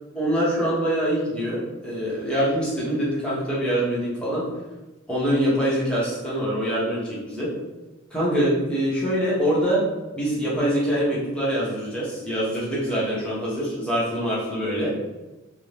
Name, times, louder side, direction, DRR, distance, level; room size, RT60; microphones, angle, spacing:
voice 1, 0.1-4.4 5.1-7.5 8.1-9.8 10.1-14.9, equal, 5° left, -9 dB, 0.7 m, -24 dB
2.5 x 2.0 x 3.1 m, 1.1 s
head